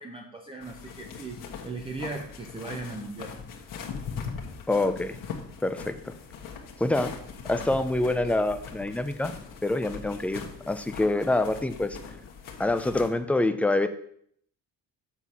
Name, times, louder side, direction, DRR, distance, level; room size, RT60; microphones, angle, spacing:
voice 1, 0.0-3.4, right 3 dB, 15° right, 1 dB, 0.8 m, -38 dB
sound 1, 0.6-13.1, left 6 dB, 65° left, 1.4 m, -41 dB
voice 2, 4.7-5.2 5.6-6.1 6.8-7.1 7.5-9.3 9.6-12.0 12.6-13.9, left 2 dB, 5° left, 9 dB, 0.4 m, -26 dB
7.1 x 4.6 x 5.5 m, 0.66 s
cardioid pair, 125°, 35 cm